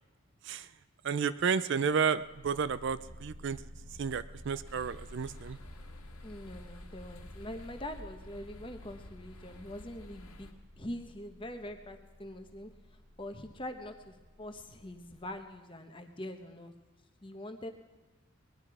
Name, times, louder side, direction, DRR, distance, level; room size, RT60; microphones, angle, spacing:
voice 1, 1.0-3.6 4.0-5.6, right 6 dB, 55° right, 14 dB, 0.4 m, -31 dB
sound 1, 2.0-15.4, left 1 dB, 80° right, 1.4 m, -52 dB
sound 2, 4.6-10.5, left 1 dB, 85° left, 1.6 m, -52 dB
voice 2, 6.2-12.7 13.2-16.7 17.2-17.7, left 1 dB, 25° left, 6 dB, 1.0 m, -44 dB
20.0 x 11.5 x 4.8 m, 1.2 s
head